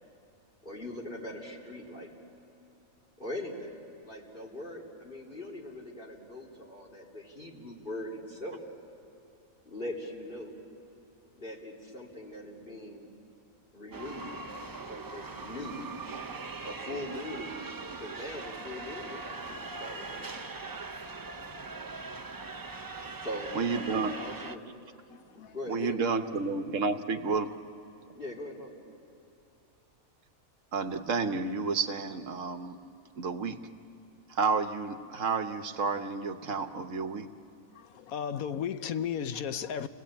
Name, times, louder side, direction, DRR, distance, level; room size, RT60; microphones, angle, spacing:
voice 1, 0.6-2.1 3.2-3.8 4.0-8.6 9.7-10.6 11.3-13.1 13.7-14.4 14.9-15.8 16.6-17.6 18.0-20.4 23.2-24.7 25.1-26.1 28.1-28.8, left 1 dB, 40° left, 3.5 m, -41 dB
sound 1, 13.9-24.6, right 3 dB, 30° right, 0.4 m, -41 dB
voice 2, 23.5-24.1 25.7-27.5 30.7-32.8 33.2-33.6 34.3-37.3, right 4 dB, 65° right, 1.4 m, -30 dB
voice 3, 25.1-25.5 37.7-39.9, left 8 dB, 85° left, 1.3 m, -34 dB
29.5 x 20.0 x 8.7 m
omnidirectional pair, 1.4 m